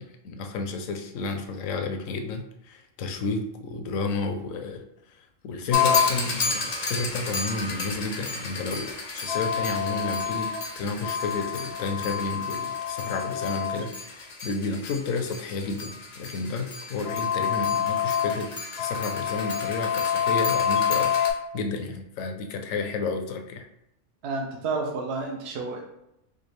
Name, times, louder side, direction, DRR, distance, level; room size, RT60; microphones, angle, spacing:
voice 1, 0.0-4.8 5.4-10.5 10.8-21.1 21.5-23.6, left 3 dB, 75° left, 5 dB, 1.0 m, -31 dB
sound 1, 5.7-21.3, left 7 dB, 50° left, 0.5 m, -28 dB
voice 2, 24.2-25.8, right 3 dB, 60° right, 1 dB, 0.7 m, -30 dB
5.0 x 2.3 x 3.2 m, 0.81 s
omnidirectional pair, 1.4 m